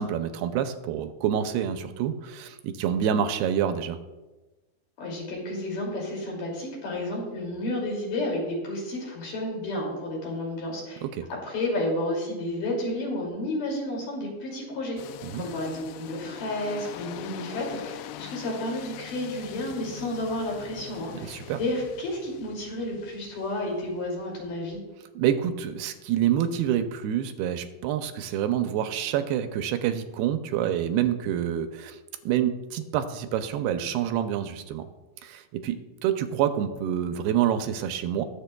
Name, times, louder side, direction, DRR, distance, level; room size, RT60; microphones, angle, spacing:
voice 1, 0.0-4.0 11.0-11.3 15.2-15.5 21.2-21.6 25.2-32.0 32.3-34.9 35.2-38.2, right 10 dB, 80° right, 8 dB, 2.5 m, -27 dB
voice 2, 5.0-11.0 11.3-15.0 15.3-24.8, left 1 dB, 55° left, -2 dB, 3.9 m, -31 dB
sound 1, 15.0-24.8, left 12 dB, 80° left, 2.4 m, -43 dB
21.0 x 7.9 x 2.2 m, 1.1 s
omnidirectional pair, 4.6 m